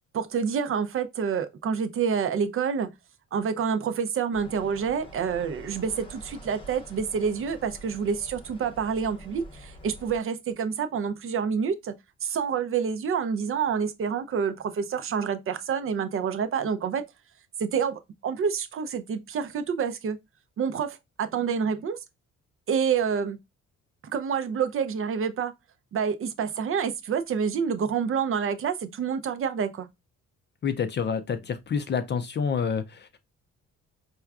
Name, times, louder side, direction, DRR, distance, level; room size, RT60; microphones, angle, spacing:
voice 1, 0.1-2.9 3.3-11.9 12.2-17.0 17.6-20.2 20.6-22.0 22.7-23.4 24.1-25.5 25.9-29.9, right 6 dB, 45° right, 0.5 m, -28 dB
sound 1, 4.3-10.2, equal, 15° left, 0.8 m, -46 dB
voice 2, 30.6-33.2, left 6 dB, 35° left, 0.4 m, -28 dB
4.3 x 2.3 x 2.3 m
cardioid pair, 90°, 30 cm